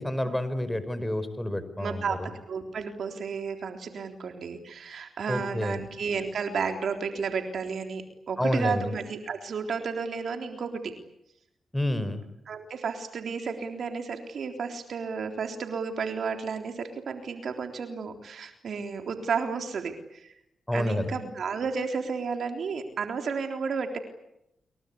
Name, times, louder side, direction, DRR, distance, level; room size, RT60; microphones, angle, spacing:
voice 1, 0.0-2.0 5.3-5.8 8.4-8.9 11.7-12.2 20.7-21.1, left 1 dB, 10° left, 12 dB, 5.1 m, -29 dB
voice 2, 1.8-11.0 12.5-20.3 20.7-24.0, right 5 dB, 65° right, 5 dB, 3.7 m, -32 dB
28.5 x 23.0 x 8.5 m, 0.82 s
supercardioid pair, 40°, 0 cm